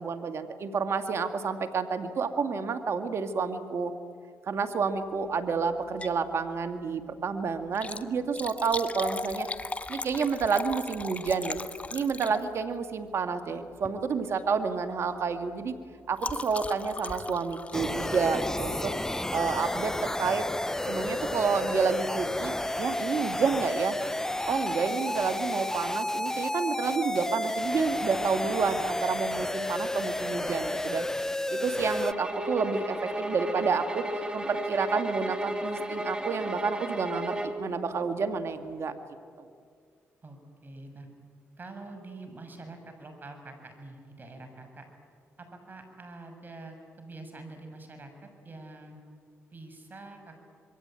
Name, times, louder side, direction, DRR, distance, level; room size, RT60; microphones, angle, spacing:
voice 1, 0.0-3.9 4.5-9.5 9.9-11.6 11.9-15.7 16.1-18.9 19.3-20.5 20.9-24.0 24.4-31.1 31.5-34.1 34.3-38.9 39.4-39.5, right 5 dB, 60° right, 8 dB, 2.0 m, -29 dB
Liquid, 5.8-6.2 6.6-6.7 7.6-12.7 13.7-14.0 14.3-14.6 14.9-19.0 19.9-20.2 20.7-20.8 21.0-21.1, left 3 dB, 25° left, 1.2 m, -38 dB
sound 1, 17.7-32.1, left 1 dB, 10° left, 0.6 m, -31 dB
sound 2, 31.9-37.6, right 1 dB, 20° right, 3.2 m, -34 dB
voice 2, 40.2-41.1 41.6-44.8 45.4-48.1 48.4-49.0 49.5-50.4, right 2 dB, 40° right, 6 dB, 6.6 m, -45 dB
26.5 x 22.5 x 9.0 m, 2.2 s
supercardioid pair, 65°, 5 cm